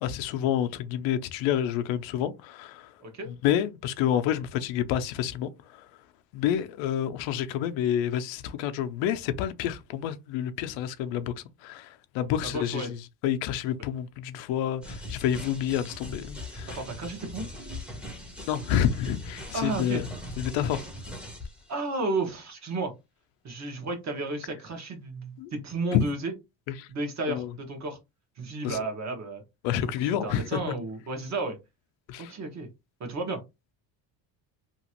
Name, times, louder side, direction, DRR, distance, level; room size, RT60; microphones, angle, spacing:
voice 1, 0.0-2.9 3.3-5.5 6.3-11.3 11.6-12.9 13.2-16.8 18.5-20.0 20.4-20.8 25.4-25.5 25.9-26.1 26.8-26.9 27.3-27.5 28.6-28.8 29.6-30.6 32.1-32.3, left 10 dB, 80° left, 0.6 m, -28 dB
voice 2, 3.0-3.3 12.4-12.9 16.7-17.5 19.5-20.0 21.7-22.9 23.4-26.3 26.9-28.0 28.4-29.4 30.0-31.6 32.2-32.7 33.0-33.4, right 2 dB, 35° right, 1.1 m, -32 dB
sound 1, 14.8-21.7, left 1 dB, ahead, 0.7 m, -40 dB
2.9 x 2.5 x 2.9 m
cardioid pair, 130°, 45 cm